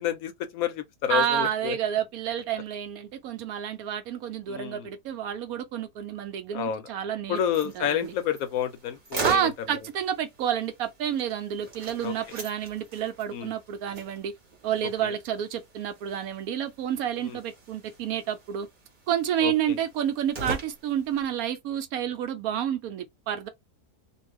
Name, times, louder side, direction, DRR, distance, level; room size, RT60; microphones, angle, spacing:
voice 1, 0.0-1.8 4.5-4.9 6.5-6.9 7.3-9.8 12.0-12.1 13.3-13.5 15.0-15.1 17.2-17.4 19.4-19.5, left 10 dB, 70° left, 0.9 m, -29 dB
voice 2, 1.1-7.4 7.7-8.1 9.2-14.3 14.6-18.7 19.1-23.5, right 10 dB, 70° right, 1.0 m, -29 dB
sound 1, 7.3-21.3, right 4 dB, 35° right, 0.9 m, -40 dB
2.6 x 2.3 x 3.2 m
omnidirectional pair, 1.7 m